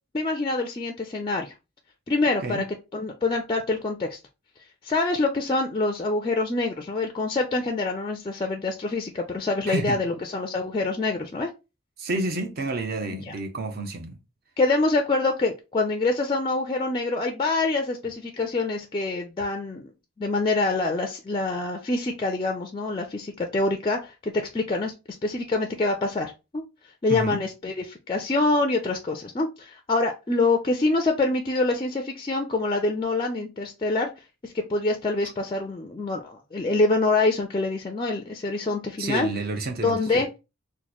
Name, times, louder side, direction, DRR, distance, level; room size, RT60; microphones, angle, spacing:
voice 1, 0.1-1.5 2.1-2.6 2.9-4.2 4.8-11.5 13.3-13.4 14.6-19.9 20.2-24.9 25.2-26.6 27.0-34.1 34.4-39.3 39.8-40.3, left 3 dB, 25° left, 0.3 m, -25 dB
voice 2, 9.7-10.0 12.0-14.2 27.1-27.4 39.0-40.2, right 2 dB, 50° right, 0.6 m, -29 dB
3.0 x 2.1 x 3.9 m
head